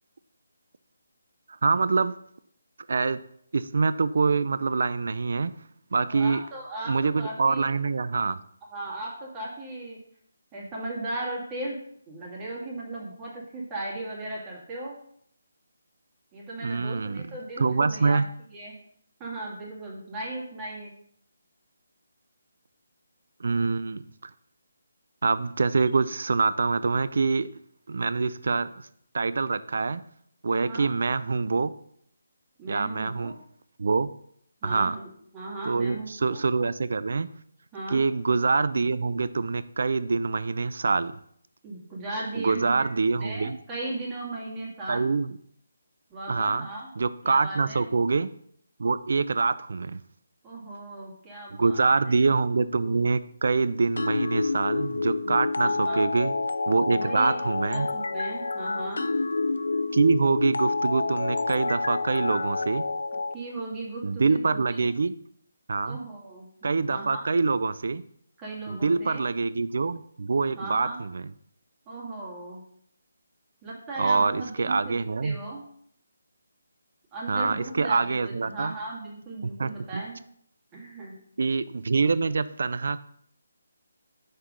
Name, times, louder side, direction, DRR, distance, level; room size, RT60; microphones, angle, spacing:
voice 1, 1.6-2.1 2.9-3.2 3.5-5.5 5.9-6.4 6.9-8.4 16.6-17.3 17.6-18.2 23.4-24.3 25.2-27.5 27.9-28.7 29.1-30.0 30.4-31.7 32.7-33.3 33.8-34.1 34.6-35.0 35.6-37.3 37.9-41.2 42.4-43.6 44.9-45.3 46.3-46.7 47.0-48.3 48.8-50.0 51.6-56.3 56.7-57.9 59.9-62.8 64.0-65.2 65.7-66.0 66.6-68.0 68.7-71.3 74.0-75.4 77.3-78.7 79.4-80.0 81.4-83.0, right 4 dB, 60° right, 15 dB, 0.5 m, -25 dB
voice 2, 6.0-7.7 8.7-10.0 10.5-11.8 12.1-15.0 16.3-18.2 18.5-18.8 19.2-20.9 30.5-30.9 32.6-33.4 34.6-36.4 37.7-38.0 41.6-45.1 46.1-46.9 47.2-47.8 50.4-51.9 52.8-53.0 55.2-56.0 56.9-59.1 63.3-64.9 65.8-66.5 66.9-67.3 68.4-69.2 70.5-71.0 71.9-72.6 73.6-75.6 77.1-80.2 80.7-81.1, right 2 dB, 15° right, -5 dB, 2.4 m, -37 dB
sound 1, 54.0-63.3, left 3 dB, 70° left, 0.4 m, -28 dB
6.6 x 4.7 x 5.4 m, 0.66 s
figure-of-eight pair, 150°, 0 cm